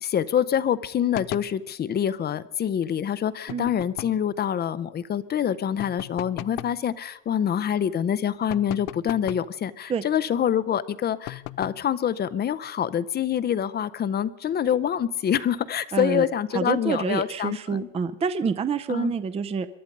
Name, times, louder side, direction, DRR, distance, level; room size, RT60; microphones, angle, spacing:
voice 1, 0.0-17.8 18.9-19.1, left 9 dB, 30° left, 17 dB, 0.6 m, -26 dB
sound 1, 1.1-1.6 3.5-4.3 5.8-6.8 8.5-9.5 11.3-11.9, left 19 dB, 80° left, 0.5 m, -37 dB
voice 2, 15.9-16.3 16.5-19.7, right 5 dB, 20° right, 12 dB, 0.5 m, -27 dB
22.5 x 11.0 x 5.3 m, 0.86 s
cardioid pair, 130°, 32 cm